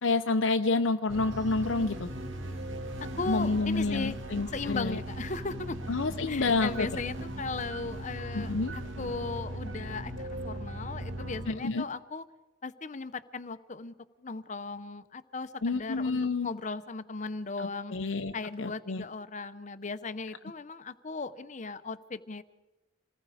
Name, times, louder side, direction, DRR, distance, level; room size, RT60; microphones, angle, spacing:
voice 1, 0.0-2.1 3.3-5.0 5.9-6.9 8.3-8.7 11.5-11.8 15.6-16.5 17.6-18.3 18.6-19.0, left 3 dB, 80° left, 6 dB, 0.7 m, -29 dB
sound 1, 1.1-11.5, right 1 dB, 80° right, 2.3 m, -38 dB
voice 2, 3.0-4.2 4.5-6.0 6.3-12.2 12.6-13.9 14.2-17.9 18.3-22.4, left 3 dB, 40° left, 12 dB, 0.8 m, -37 dB
27.5 x 20.0 x 5.0 m, 1.1 s
head